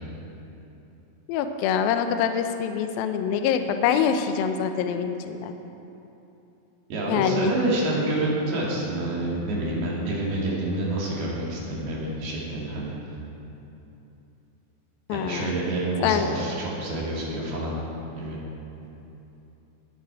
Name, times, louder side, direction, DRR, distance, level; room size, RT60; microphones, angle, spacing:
voice 1, 1.3-5.5 7.1-7.5 15.1-15.5 16.0-16.3, left 8 dB, 75° left, 7 dB, 2.3 m, -25 dB
voice 2, 6.9-12.9 15.1-17.7 18.2-18.4, right 1 dB, 70° right, -4 dB, 4.4 m, -28 dB
20.5 x 10.5 x 4.7 m, 3.0 s
omnidirectional pair, 4.8 m